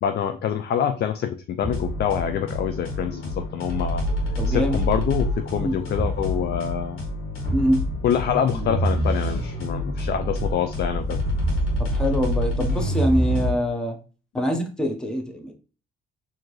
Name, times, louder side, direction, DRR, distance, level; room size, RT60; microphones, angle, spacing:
voice 1, 0.0-4.0 4.5-7.0 8.0-11.2 14.4-14.5, left 8 dB, 55° left, 8 dB, 0.4 m, -26 dB
sound 1, 1.6-13.5, equal, 85° left, 1.6 m, -26 dB
voice 2, 4.4-4.8 5.5-5.7 7.5-7.8 11.8-14.0 14.3-15.5, equal, 5° left, 2 dB, 0.8 m, -24 dB
4.5 x 2.8 x 3.0 m, 0.36 s
cardioid pair, 90°, 20 cm